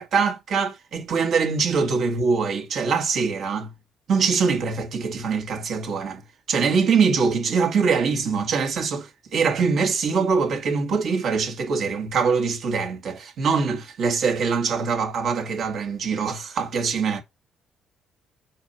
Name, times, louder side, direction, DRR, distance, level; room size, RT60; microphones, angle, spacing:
voice 1, 0.0-3.7 4.1-6.2 6.5-17.2, right 5 dB, 65° right, 1.8 m, -23 dB
4.7 x 4.4 x 5.5 m
cardioid pair, 90°, 0 cm